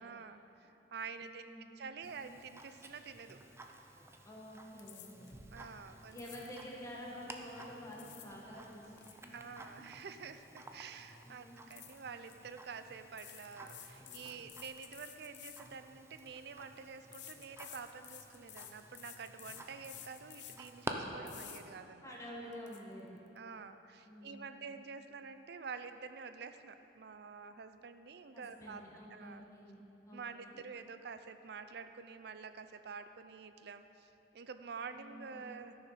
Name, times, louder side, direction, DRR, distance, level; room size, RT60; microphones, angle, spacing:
voice 1, 0.0-3.4 5.5-6.2 9.3-22.1 23.4-28.8 29.1-29.4 30.1-35.8, right 5 dB, 65° right, 10 dB, 0.5 m, -48 dB
voice 2, 1.1-1.7 4.2-5.3 6.1-9.6 11.2-11.7 22.0-23.1 24.1-24.6 28.3-29.8 30.0-30.6 34.8-35.4, equal, 20° left, -4 dB, 1.4 m, -49 dB
Tick-tock, 2.0-20.9, right 2 dB, 15° right, 0.6 m, -52 dB
sound 1, 4.8-5.4 6.1-6.7 7.7-8.4 8.7-10.6 10.9-11.1 11.7-12.4 13.1-16.3 17.1-20.8 21.3-21.6 22.1-22.2 22.5-22.8, left 11 dB, 80° left, 0.8 m, -53 dB
13.5 x 6.5 x 5.8 m, 2.9 s
head